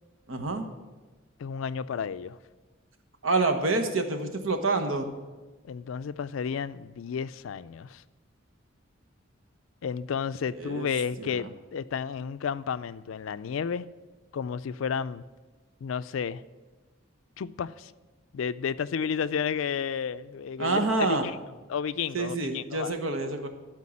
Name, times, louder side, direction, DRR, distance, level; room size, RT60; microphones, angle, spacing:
voice 1, 0.3-0.7 3.2-5.1 10.5-10.9 11.2-11.5 20.6-21.3 22.1-23.5, right 3 dB, 85° right, 1.2 m, -27 dB
voice 2, 1.4-2.4 5.6-8.0 9.8-13.9 14.3-15.2 15.8-16.4 17.4-17.9 18.3-20.8 21.2-21.3 21.7-22.9, left 6 dB, 75° left, 0.4 m, -32 dB
12.5 x 4.6 x 8.5 m
head